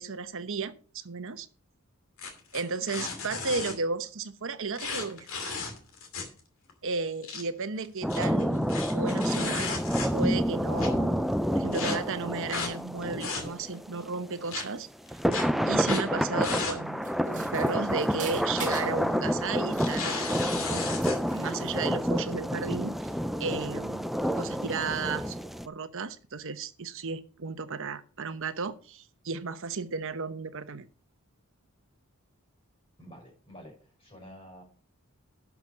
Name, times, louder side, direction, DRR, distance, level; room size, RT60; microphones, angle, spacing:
voice 1, 0.0-1.5 2.5-5.6 6.8-9.7 10.1-11.2 11.5-14.9 15.7-17.0 17.3-20.1 20.5-20.8 21.3-23.0 23.4-24.1 24.4-25.4 25.7-30.9, right 4 dB, 65° right, 0.9 m, -34 dB
sound 1, 2.2-3.7 4.8-6.4 6.7-6.8 7.1-7.4 8.0-10.3 10.8-10.9 11.7-12.0 12.5-12.7 13.1-13.7 14.5-14.6 15.3-15.4 15.8-16.1 16.4-16.8 17.1-17.2 18.3-18.8 19.1-19.3 19.7-21.2, left 4 dB, 65° left, 2.6 m, -35 dB
sound 2, 8.0-14.3 15.1-25.7, equal, ahead, 0.4 m, -29 dB
sound 3, 17.0-19.0 19.5-20.7 21.0-21.9, right 6 dB, 35° right, 2.1 m, -43 dB
voice 2, 33.0-34.6, equal, 25° left, 6.2 m, -49 dB
11.5 x 6.1 x 5.1 m
head